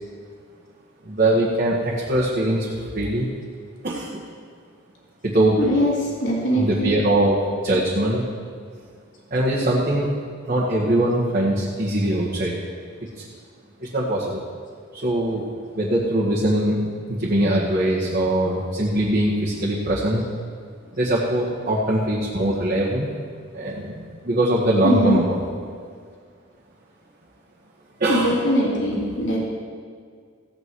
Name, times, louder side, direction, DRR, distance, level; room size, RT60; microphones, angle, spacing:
voice 1, 1.0-3.3 3.8-4.2 5.2-5.6 6.5-8.2 9.3-10.1 10.5-12.6 13.8-14.4 14.9-15.4 15.7-20.2 20.9-23.1 23.5-25.4 28.0-28.3, right 1 dB, 45° right, -7 dB, 1.8 m, -22 dB
voice 2, 5.6-7.0 24.8-25.4 28.1-29.4, equal, 70° left, -4 dB, 3.1 m, -22 dB
16.0 x 8.7 x 4.7 m, 2.1 s
head